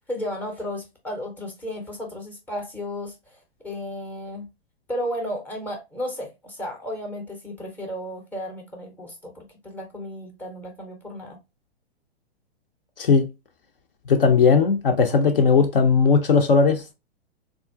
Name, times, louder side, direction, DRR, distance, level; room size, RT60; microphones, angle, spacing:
voice 1, 0.1-3.4 3.6-4.5 4.9-11.4, equal, 5° left, 0.5 m, -33 dB
voice 2, 14.1-16.9, left 5 dB, 60° left, 0.5 m, -18 dB
3.6 x 2.3 x 2.2 m
figure-of-eight pair, 110°, 32 cm